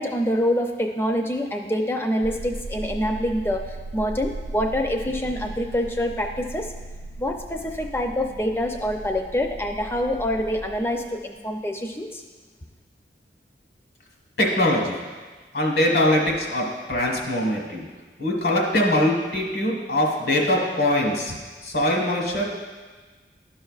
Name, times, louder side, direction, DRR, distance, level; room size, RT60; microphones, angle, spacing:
voice 1, 0.0-6.7 7.2-12.2, equal, 15° left, 3 dB, 0.4 m, -26 dB
sound 1, 2.2-11.1, right 2 dB, 90° right, 0.6 m, -37 dB
voice 2, 14.4-15.0 15.5-17.9 18.2-21.3 21.6-22.5, left 1 dB, 80° left, 0 dB, 1.3 m, -22 dB
11.5 x 5.5 x 2.4 m, 1.4 s
head